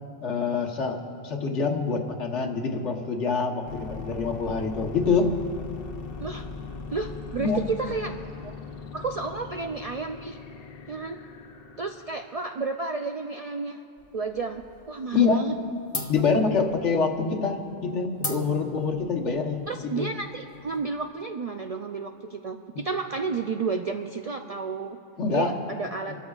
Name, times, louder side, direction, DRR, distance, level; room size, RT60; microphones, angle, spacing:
voice 1, 0.2-5.3 7.4-7.6 15.1-15.5 16.1-20.1 25.2-25.5, left 5 dB, 85° left, 2 dB, 1.5 m, -26 dB
sound 1, 3.7-12.3, left 4 dB, 60° left, 0.9 m, -40 dB
voice 2, 6.9-8.1 8.4-8.5 8.9-10.4 10.9-11.2 11.8-13.8 14.1-14.6 14.9-15.5 19.7-25.0 25.3-26.1, right 4 dB, 60° right, 4 dB, 0.4 m, -31 dB
sound 2, 14.0-14.9 15.2-15.6 15.9-21.1, left 2 dB, 30° left, 1.0 m, -39 dB
27.0 x 13.0 x 2.4 m, 2.6 s
omnidirectional pair, 1.2 m